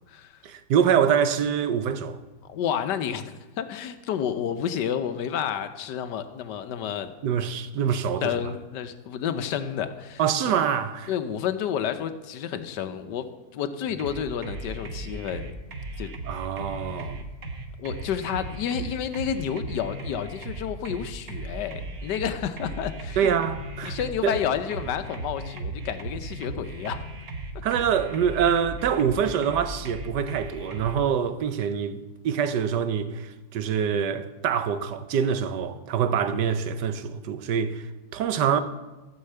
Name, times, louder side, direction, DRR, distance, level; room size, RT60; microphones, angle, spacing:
voice 1, 0.4-2.2 7.2-8.4 10.2-11.1 16.3-17.3 23.2-24.0 24.2-24.3 27.6-38.6, right 8 dB, 70° right, 1.3 m, -25 dB
voice 2, 2.5-7.1 8.2-10.2 11.1-15.5 16.0-16.1 17.8-23.3 23.8-27.1, left 8 dB, 70° left, 1.4 m, -30 dB
sound 1, 14.0-31.0, right 2 dB, 50° right, 1.6 m, -36 dB
15.0 x 5.6 x 7.9 m
omnidirectional pair, 2.1 m